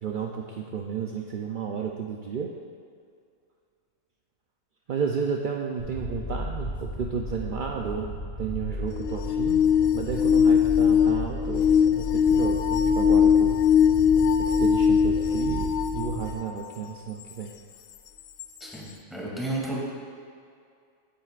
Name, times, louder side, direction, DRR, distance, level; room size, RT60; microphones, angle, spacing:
voice 1, 0.0-2.5 4.9-9.6 9.9-13.6 14.4-17.5, right 6 dB, 55° right, 0 dB, 0.5 m, -32 dB
sound 1, 5.8-16.3, left 1 dB, 30° left, 1.3 m, -35 dB
sound 2, 8.9-16.6 17.3-17.4 18.4-18.5, left 7 dB, 75° left, 1.0 m, -21 dB
voice 2, 18.6-19.8, right 2 dB, ahead, -5 dB, 2.5 m, -32 dB
17.0 x 8.9 x 2.5 m, 2.2 s
omnidirectional pair, 1.5 m